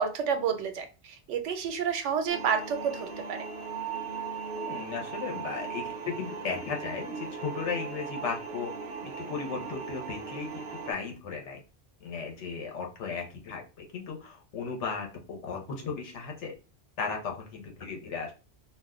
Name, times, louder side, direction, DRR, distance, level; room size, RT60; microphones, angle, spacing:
voice 1, 0.0-3.5, right 7 dB, 90° right, 7 dB, 0.9 m, -30 dB
sound 1, 2.3-10.9, right 5 dB, 60° right, 0.6 m, -38 dB
voice 2, 4.5-8.7 9.0-11.6 12.0-16.5 17.0-18.3, left 5 dB, 85° left, 1 dB, 1.1 m, -36 dB
2.4 x 2.1 x 3.5 m, 0.33 s
omnidirectional pair, 1.2 m